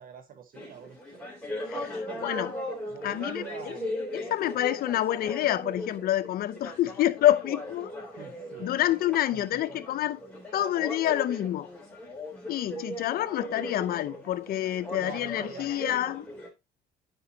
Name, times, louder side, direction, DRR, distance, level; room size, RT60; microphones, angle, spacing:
voice 1, 0.0-1.3 2.0-2.3 2.9-3.9 8.2-8.7 9.3-9.8 15.0-15.9, right 7 dB, 55° right, 1.1 m, -45 dB
sound 1, 0.5-16.5, left 1 dB, 5° left, 3.8 m, -38 dB
voice 2, 1.7-2.5 3.0-3.8 4.1-7.9 8.6-10.2 10.5-11.7 12.5-16.3, left 13 dB, 60° left, 0.7 m, -28 dB
9.9 x 5.3 x 2.8 m
cardioid pair, 110°, 17 cm